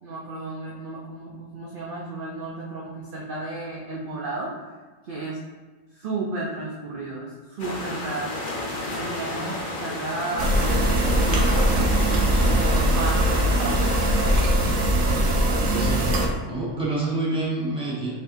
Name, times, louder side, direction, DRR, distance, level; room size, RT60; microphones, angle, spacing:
voice 1, 0.0-4.7 5.0-5.4 5.9-8.3 8.9-11.9 12.4-14.2, right 2 dB, 55° right, -4 dB, 0.7 m, -33 dB
sound 1, 7.6-14.4, left 1 dB, 50° left, 0.8 m, -32 dB
sound 2, 10.4-16.3, right 1 dB, 70° right, 1.0 m, -21 dB
voice 2, 15.7-18.2, right 2 dB, 5° right, -8 dB, 1.2 m, -28 dB
5.2 x 3.6 x 2.6 m, 1.3 s
omnidirectional pair, 1.3 m